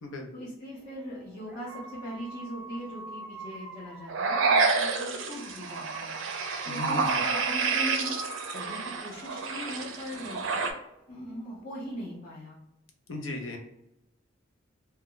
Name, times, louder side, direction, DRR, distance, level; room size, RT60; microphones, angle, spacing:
voice 1, 0.3-6.1 6.6-8.1 8.5-10.6 11.1-12.6, equal, 35° left, -6 dB, 0.6 m, -40 dB
sound 1, 0.8-4.8 5.9-10.1 10.7-12.2, right 1 dB, 10° right, 0.4 m, -45 dB
sound 2, 4.1-10.7, right 4 dB, 75° right, 0.4 m, -29 dB
voice 2, 6.7-7.3 13.1-13.6, left 2 dB, 80° left, 3 dB, 0.6 m, -36 dB
2.2 x 2.0 x 3.7 m, 0.82 s
head